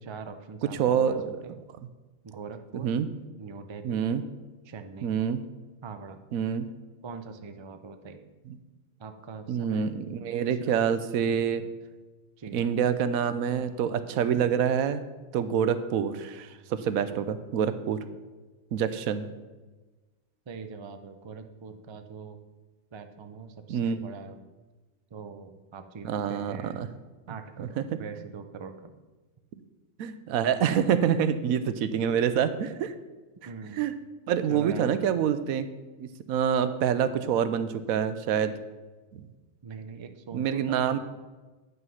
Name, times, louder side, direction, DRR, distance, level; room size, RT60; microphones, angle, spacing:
voice 1, 0.0-1.5 2.2-2.9 3.4-4.0 4.7-5.1 5.8-6.2 7.0-8.3 9.0-9.9 10.5-10.9 11.2-11.4 12.4-12.9 20.5-22.4 22.9-24.5 25.1-26.8 27.3-27.7 28.0-29.0 33.4-33.9 34.5-34.9 39.6-41.0, right 5 dB, 45° right, 8 dB, 0.3 m, -42 dB
voice 2, 0.8-1.3 2.8-3.1 3.8-4.2 5.0-5.4 6.3-6.7 8.5-8.6 9.5-11.6 12.5-15.0 15.3-18.0 18.7-19.3 23.7-24.0 26.0-26.9 27.6-27.8 30.0-32.9 33.8-33.9 34.3-35.7 36.0-38.5 39.1-39.2 40.3-41.0, right 8 dB, 90° right, 12 dB, 1.1 m, -26 dB
9.2 x 5.6 x 5.6 m, 1.2 s
omnidirectional pair, 1.4 m